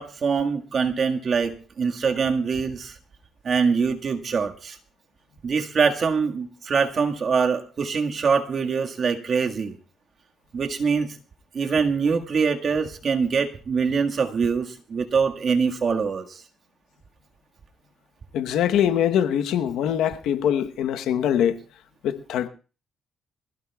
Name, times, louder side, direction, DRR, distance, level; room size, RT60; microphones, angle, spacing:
voice 1, 0.0-2.9 3.4-4.8 5.4-9.8 10.5-11.1 11.5-16.4, right 5 dB, 50° right, 1.7 m, -24 dB
voice 2, 18.3-21.6 22.0-22.5, left 9 dB, 85° left, 1.0 m, -23 dB
23.0 x 16.5 x 2.4 m
cardioid pair, 90°, 0 cm